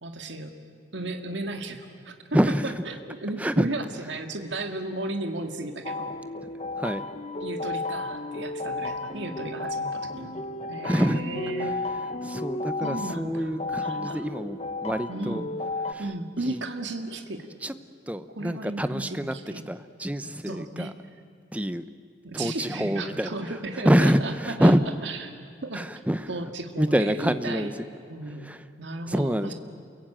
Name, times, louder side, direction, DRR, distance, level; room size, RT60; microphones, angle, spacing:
voice 1, 0.0-0.6 0.9-2.4 2.9-6.2 7.4-11.8 12.8-13.6 13.8-14.3 15.1-15.5 16.0-17.5 18.4-19.7 20.5-21.0 22.2-24.7 25.0-25.3 25.6-25.9 26.3-27.7 28.1-29.5, right 2 dB, 80° right, 5 dB, 1.9 m, -35 dB
voice 2, 2.3-2.7 3.4-3.7 6.8-7.1 10.7-11.2 12.2-15.4 15.9-16.1 16.4-16.6 17.6-17.7 18.1-19.4 19.7-20.9 21.5-21.8 22.3-23.4 23.8-24.8 25.7-26.5 26.8-27.8 28.4-28.6 29.1-29.5, equal, 10° right, 12 dB, 0.8 m, -26 dB
sound 1, 5.8-15.9, left 2 dB, 35° left, 0.9 m, -33 dB
28.5 x 23.0 x 8.9 m, 2.3 s
head